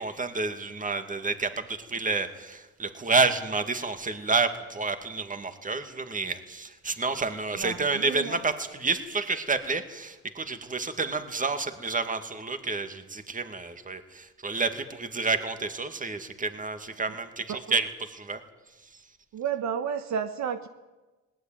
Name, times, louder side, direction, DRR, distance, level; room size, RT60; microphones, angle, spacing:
voice 1, 0.0-18.4, right 4 dB, 25° right, 8 dB, 2.3 m, -29 dB
voice 2, 7.6-8.4 17.5-17.6 19.3-20.7, right 7 dB, 65° right, 9 dB, 1.3 m, -31 dB
19.5 x 18.5 x 9.3 m, 1.1 s
cardioid pair, 90°, 30 cm